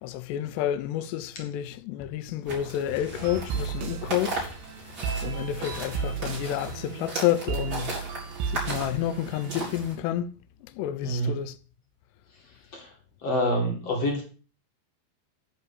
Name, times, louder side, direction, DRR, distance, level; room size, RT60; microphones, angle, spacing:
voice 1, 0.0-4.5 4.8-5.0 5.2-8.0 8.5-10.3 10.6-11.6, left 12 dB, 80° left, 2.7 m, -30 dB
sound 1, 2.5-9.9, right 2 dB, 20° right, 4.4 m, -37 dB
sound 2, 3.2-9.8, right 6 dB, 80° right, 3.7 m, -34 dB
voice 2, 11.0-11.4 12.7-12.9 13.2-14.2, equal, 45° left, 2.4 m, -26 dB
10.5 x 5.5 x 6.5 m
omnidirectional pair, 5.3 m